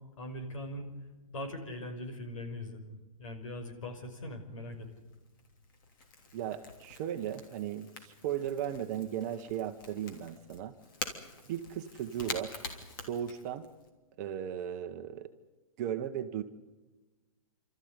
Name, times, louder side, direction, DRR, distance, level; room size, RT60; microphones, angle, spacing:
voice 1, 0.2-0.9 1.3-4.9, left 1 dB, 70° left, 5 dB, 5.4 m, -41 dB
Crackle / Crack, 4.3-13.9, left 3 dB, 40° left, 3.1 m, -46 dB
voice 2, 6.3-10.7 11.5-12.6 13.1-13.6 14.2-15.3 15.8-16.4, right 10 dB, 30° right, 7 dB, 1.1 m, -36 dB
30.0 x 13.5 x 9.7 m, 1.2 s
hypercardioid pair, 170°, 17 cm